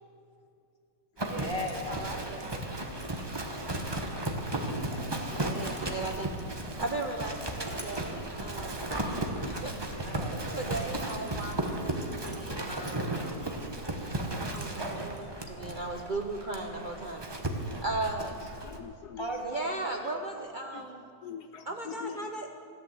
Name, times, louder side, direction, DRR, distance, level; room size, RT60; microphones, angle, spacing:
voice 1, 1.2-2.8 4.6-5.4 10.0-10.7 19.2-20.2, equal, 15° left, 1 dB, 1.7 m, -39 dB
Livestock farm animals working animals, 1.2-18.8, right 1 dB, 20° right, 0.8 m, -35 dB
voice 2, 1.9-2.6 5.1-8.8 9.4-9.7 10.5-11.6 11.8-13.3 14.5-17.3 17.8-18.4 19.5-21.0 21.7-22.5, right 2 dB, 80° right, 3 dB, 0.4 m, -37 dB
voice 3, 14.8-15.8 18.2-19.4 19.9-20.1 20.7-20.9 21.2-22.5, left 8 dB, 70° left, 8 dB, 1.0 m, -45 dB
15.0 x 10.5 x 7.6 m, 2.4 s
omnidirectional pair, 2.0 m